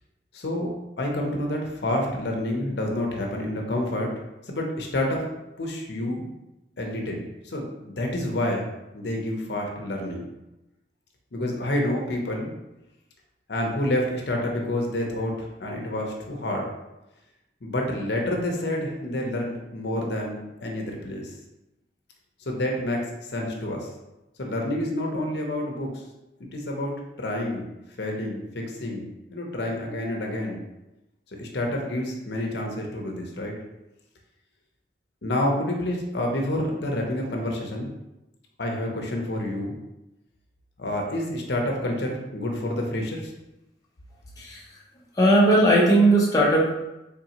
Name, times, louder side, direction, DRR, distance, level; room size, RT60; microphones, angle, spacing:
voice 1, 0.3-0.7 1.0-4.1 4.4-5.3 5.6-6.3 6.8-8.7 8.9-10.3 11.3-12.5 13.5-16.7 17.6-21.3 22.4-23.9 24.4-26.0 26.4-27.7 28.0-30.6 31.4-33.5 35.2-37.9 38.6-39.7 40.8-43.3, left 1 dB, 65° left, 0 dB, 0.7 m, -28 dB
voice 2, 45.2-46.7, right 1 dB, 20° left, -4 dB, 0.6 m, -18 dB
3.7 x 3.5 x 2.9 m, 0.96 s
head